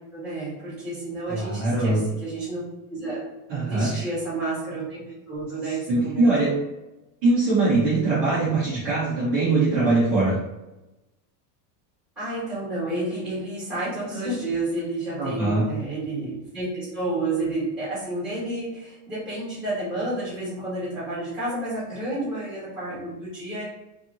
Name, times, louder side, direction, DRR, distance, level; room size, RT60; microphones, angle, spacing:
voice 1, 0.1-2.6 2.9-3.2 3.6-6.6 12.1-23.6, right 2 dB, ahead, -10 dB, 1.3 m, -30 dB
voice 2, 1.3-2.0 3.5-4.1 5.9-6.5 7.2-10.4 15.2-15.6, right 2 dB, 20° right, -11 dB, 0.4 m, -22 dB
2.7 x 2.6 x 2.5 m, 1.0 s
supercardioid pair, 180°, 50 cm